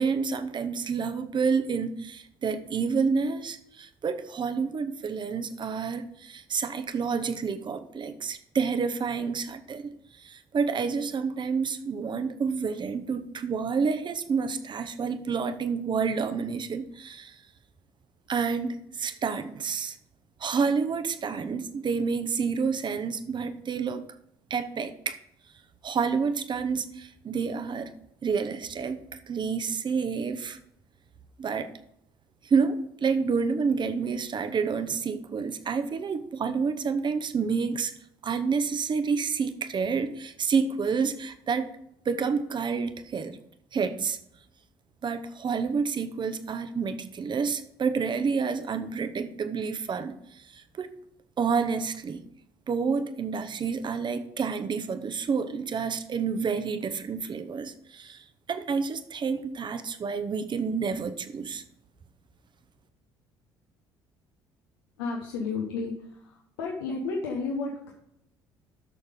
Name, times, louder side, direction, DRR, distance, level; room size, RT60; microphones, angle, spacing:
voice 1, 0.0-17.4 18.3-20.0 20.4-24.0 24.5-25.2 25.8-27.9 28.2-30.6 31.4-31.7 32.4-37.9 38.2-41.7 42.0-43.4 43.7-44.2 45.0-50.9 51.4-52.2 52.7-61.6, right 5 dB, 40° right, 11 dB, 1.0 m, -29 dB
voice 2, 65.0-67.9, left 4 dB, 80° left, 0 dB, 1.2 m, -32 dB
12.0 x 6.5 x 3.8 m, 0.76 s
hypercardioid pair, 55°, 12 cm